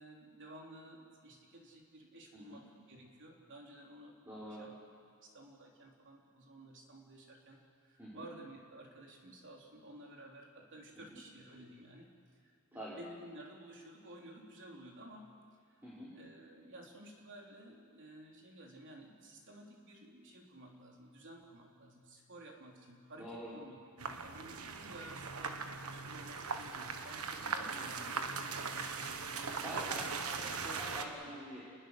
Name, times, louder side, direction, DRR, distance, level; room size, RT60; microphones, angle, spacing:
voice 1, 0.0-4.3 4.6-4.7 5.2-15.3 15.7-15.8 16.1-28.3 28.6-30.0 31.0-31.1, right 1 dB, 55° right, 0 dB, 3.5 m, -54 dB
voice 2, 4.2-4.6 8.0-8.3 10.9-11.2 12.7-13.0 15.8-16.1 23.2-23.5 27.4-27.7 29.6-31.6, equal, 10° right, -9 dB, 4.9 m, -47 dB
sound 1, 24.0-31.0, right 4 dB, 80° right, 1.5 m, -40 dB
28.0 x 21.0 x 6.6 m, 2.3 s
head